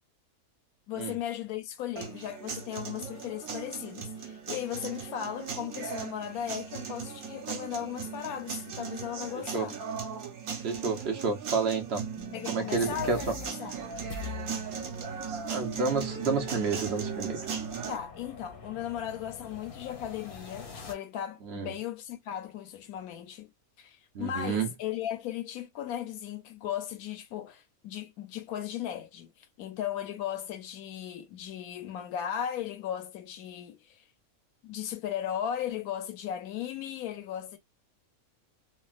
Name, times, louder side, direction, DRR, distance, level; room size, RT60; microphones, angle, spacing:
voice 1, 0.9-9.8 12.3-13.7 17.9-23.5 23.8-34.0 34.6-37.6, left 10 dB, 85° left, 1.2 m, -36 dB
sound 1, 2.0-18.0, right 6 dB, 80° right, 1.4 m, -38 dB
voice 2, 10.6-12.0 12.5-13.3 15.5-17.4 21.4-21.7 24.1-24.7, right 4 dB, 50° right, 1.0 m, -30 dB
Bass guitar, 12.2-18.4, equal, 25° left, 0.5 m, -54 dB
sound 2, 12.4-20.9, left 4 dB, 45° left, 0.8 m, -46 dB
3.3 x 2.3 x 2.4 m
omnidirectional pair, 1.5 m